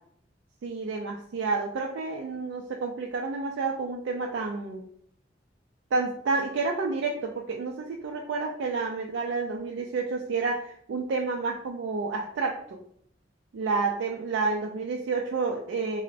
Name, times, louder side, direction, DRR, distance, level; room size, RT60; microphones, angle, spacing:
voice 1, 0.6-4.9 5.9-12.8 13.5-16.0, right 4 dB, 85° right, 1 dB, 0.3 m, -30 dB
2.5 x 2.0 x 3.9 m, 0.65 s
head